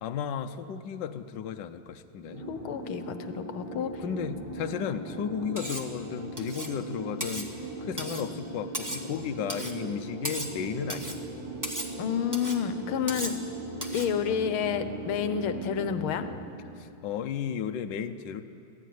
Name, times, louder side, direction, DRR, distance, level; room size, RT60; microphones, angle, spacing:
voice 1, 0.0-2.5 4.0-7.5 7.8-11.2 16.8-18.4, left 8 dB, 65° left, 7 dB, 1.4 m, -34 dB
sound 1, 2.3-16.4, right 2 dB, 80° right, 6.0 m, -39 dB
voice 2, 2.5-4.0 12.0-13.3 13.9-16.3, left 8 dB, 85° left, 10 dB, 1.8 m, -30 dB
Cutlery silverware, 5.6-5.9 6.4-6.8 7.2-7.5 8.0-8.3 8.7-9.1 9.5-9.8 10.2-10.6 10.9-11.2 11.6-11.9 12.3-12.6 13.1-13.4 13.8-14.1, right 1 dB, 10° right, 1.4 m, -36 dB
24.5 x 16.5 x 9.4 m, 2.6 s
omnidirectional pair, 2.3 m